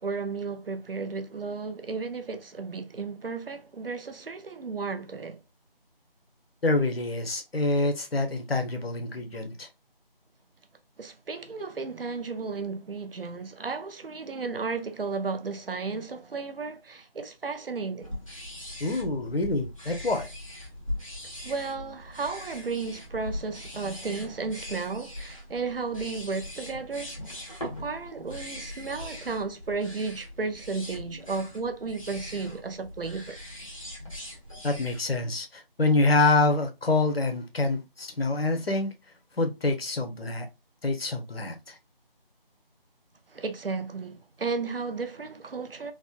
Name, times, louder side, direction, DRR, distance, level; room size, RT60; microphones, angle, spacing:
voice 1, 0.0-5.4 11.0-18.1 21.4-33.4 43.3-45.9, right 4 dB, 70° right, 0.6 m, -34 dB
voice 2, 6.6-9.7 18.8-20.2 34.6-38.9 39.4-40.5 40.8-41.8, left 2 dB, 80° left, 0.9 m, -26 dB
sound 1, 18.0-35.0, left 1 dB, 35° left, 0.9 m, -41 dB
3.5 x 2.2 x 2.4 m
figure-of-eight pair, 180°, 29 cm